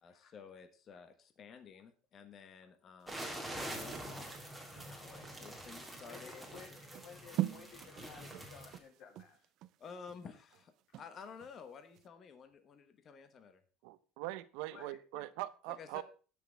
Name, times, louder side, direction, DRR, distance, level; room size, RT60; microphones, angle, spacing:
voice 1, 0.0-6.5 9.8-13.6 15.7-16.0, left 6 dB, 30° left, 1.2 m, -53 dB
sound 1, 3.0-11.6 11.9-12.1, right 14 dB, 50° right, 0.5 m, -44 dB
sound 2, 3.1-8.8, right 1 dB, ahead, 2.1 m, -46 dB
voice 2, 6.0-9.4 10.9-11.0 14.7-15.2, left 6 dB, 55° left, 3.0 m, -56 dB
voice 3, 13.8-16.0, right 17 dB, 85° right, 0.8 m, -42 dB
17.5 x 6.3 x 3.4 m
cardioid pair, 160°, 0 cm